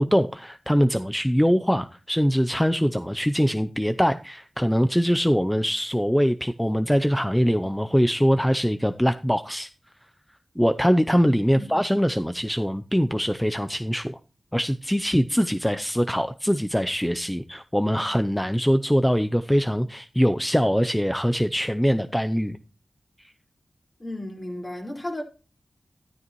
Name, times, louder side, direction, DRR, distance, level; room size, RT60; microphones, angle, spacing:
voice 1, 0.0-9.7 10.6-14.2 14.5-22.6, equal, 5° left, 0.6 m, -23 dB
voice 2, 24.0-25.2, left 1 dB, 40° left, 4.7 m, -33 dB
13.5 x 12.5 x 3.1 m
cardioid pair, 50°, 0 cm